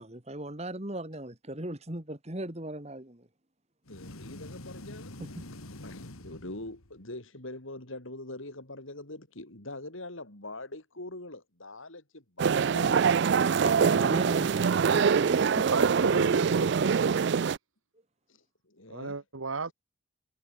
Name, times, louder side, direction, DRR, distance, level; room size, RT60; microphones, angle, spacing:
voice 1, 0.0-3.3 5.2-5.3 13.6-15.7, right 1 dB, 30° right, 2.3 m, -38 dB
sound 1, 3.9-7.0, left 1 dB, 90° left, 2.9 m, -45 dB
voice 2, 3.9-5.2 5.8-13.0 13.8-14.3 18.3-19.2, left 2 dB, 70° left, 4.3 m, -43 dB
sound 2, 12.4-17.6, right 6 dB, 55° right, 0.3 m, -24 dB
voice 3, 15.7-17.2 18.9-19.7, right 3 dB, 75° right, 1.3 m, -32 dB
head